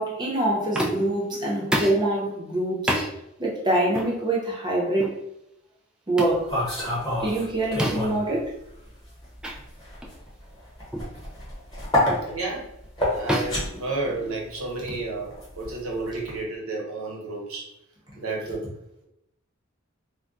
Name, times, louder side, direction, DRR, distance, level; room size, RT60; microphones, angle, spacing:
voice 1, 0.0-3.0 3.4-5.2 6.1-6.5 7.2-8.5, right 1 dB, 20° right, -3 dB, 0.7 m, -25 dB
sound 1, 0.7-1.2 1.7-2.1 2.9-3.1 3.9-4.1 5.0-5.2 6.2-6.4 7.8-8.2 9.4-9.6 10.0-10.2 10.9-11.2 12.1-12.3 13.3-14.5, equal, 5° right, 0.3 m, -28 dB
sound 2, 6.2-8.3 8.6-16.4, left 1 dB, 20° left, 1.1 m, -29 dB
voice 2, 12.2-12.7 13.1-15.3 15.6-17.7 18.1-18.6, right 3 dB, 85° right, -2 dB, 0.9 m, -31 dB
2.3 x 2.1 x 3.8 m, 0.79 s
head